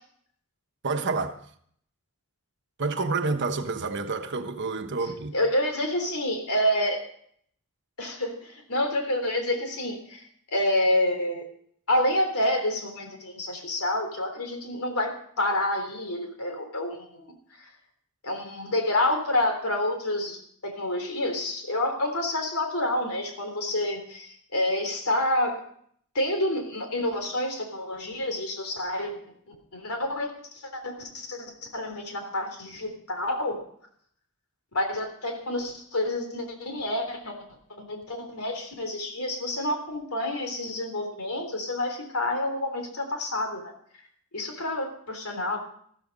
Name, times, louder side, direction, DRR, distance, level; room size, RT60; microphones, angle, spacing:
voice 1, 0.8-1.4 2.8-5.3, right 4 dB, 55° right, 1.2 m, -28 dB
voice 2, 5.3-7.0 8.0-10.2 10.5-11.4 11.9-17.3 17.6-17.7 18.2-25.6 26.2-29.2 29.5-33.6 34.7-37.4 37.8-43.7 44.3-45.6, left 1 dB, 75° left, 3.6 m, -28 dB
14.0 x 13.5 x 5.4 m
head